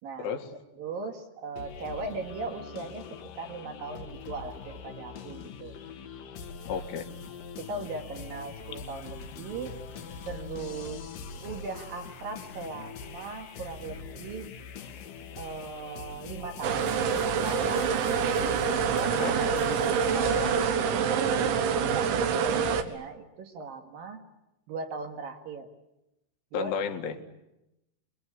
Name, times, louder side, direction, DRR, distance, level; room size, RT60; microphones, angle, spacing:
voice 1, 0.0-0.3 0.7-5.7 7.6-9.8 10.2-11.1 11.4-14.5 15.4-17.9 19.0-19.7 20.0-24.2 24.7-25.7 26.5-26.8, right 4 dB, 60° right, 4 dB, 3.1 m, -39 dB
sound 1, 1.6-20.8, left 5 dB, 60° left, 2.7 m, -42 dB
voice 2, 6.7-7.1 19.0-19.3 26.5-27.2, left 6 dB, 80° left, 4 dB, 4.3 m, -32 dB
sound 2, 16.6-22.8, right 6 dB, 80° right, 3.9 m, -26 dB
27.5 x 22.0 x 9.8 m, 0.92 s
omnidirectional pair, 5.4 m